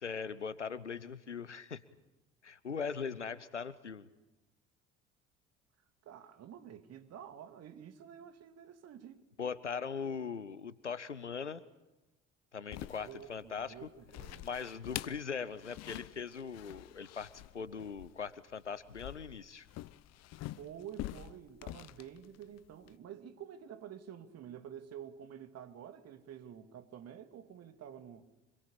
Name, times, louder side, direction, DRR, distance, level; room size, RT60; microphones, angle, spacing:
voice 1, 0.0-1.8 2.4-4.1 9.4-11.6 12.5-13.9 14.4-19.7, left 6 dB, 90° left, 0.8 m, -40 dB
voice 2, 6.0-9.2 13.0-14.5 20.6-28.2, right 9 dB, 45° right, 2.4 m, -49 dB
sound 1, 12.7-23.0, left 15 dB, 50° left, 0.9 m, -46 dB
26.5 x 22.0 x 8.6 m
figure-of-eight pair, 55°, 34 cm